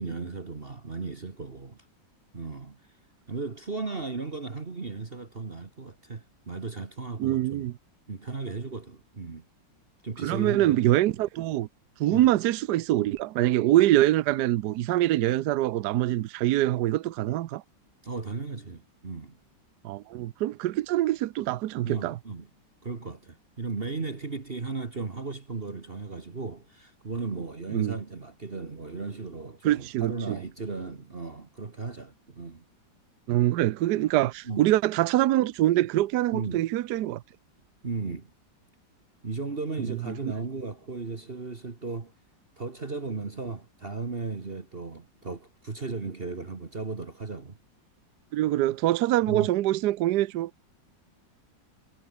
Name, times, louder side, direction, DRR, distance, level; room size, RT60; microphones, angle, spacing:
voice 1, 0.0-1.8 2.3-2.8 3.3-7.7 8.1-9.4 10.0-10.8 12.1-12.3 18.0-19.4 21.8-22.5 22.8-32.6 34.5-34.7 36.3-36.6 37.8-38.3 39.2-42.1 42.6-47.5 49.2-49.5, right 4 dB, 30° right, 1.7 m, -36 dB
voice 2, 7.2-7.7 10.2-11.7 12.0-17.6 19.8-22.2 27.7-28.0 29.6-30.4 33.3-37.2 39.9-40.3 48.3-50.5, right 14 dB, 70° right, 1.2 m, -24 dB
omnidirectional pair, 2.0 m